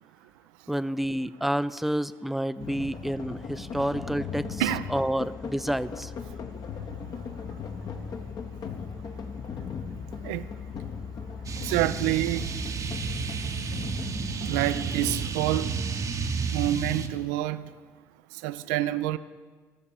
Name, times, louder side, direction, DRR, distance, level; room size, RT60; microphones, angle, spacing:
voice 1, 0.7-4.6 4.9-6.1, right 1 dB, ahead, 15 dB, 0.4 m, -29 dB
sound 1, 2.6-15.3, left 6 dB, 50° left, 1.0 m, -38 dB
sound 2, 11.4-17.1, right 5 dB, 40° right, 0.8 m, -31 dB
voice 2, 11.6-12.5 14.4-15.8 16.5-17.7 18.4-19.2, right 15 dB, 70° right, 15 dB, 0.4 m, -27 dB
12.0 x 6.6 x 7.4 m, 1.4 s
figure-of-eight pair, 45°, 9 cm